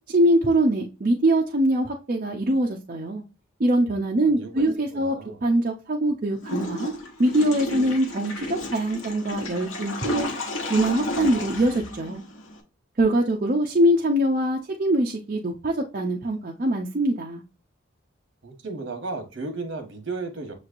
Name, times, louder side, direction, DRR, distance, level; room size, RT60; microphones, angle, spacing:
voice 1, 0.1-3.2 3.6-6.9 7.2-10.3 10.7-12.2 13.0-17.4, right 1 dB, 40° right, 0.5 m, -23 dB
voice 2, 4.2-4.7 4.9-5.4 18.4-20.5, right 3 dB, 65° right, 1.2 m, -34 dB
Water / Toilet flush, 6.4-12.6, left 2 dB, 85° left, 1.0 m, -32 dB
6.5 x 3.1 x 2.5 m
head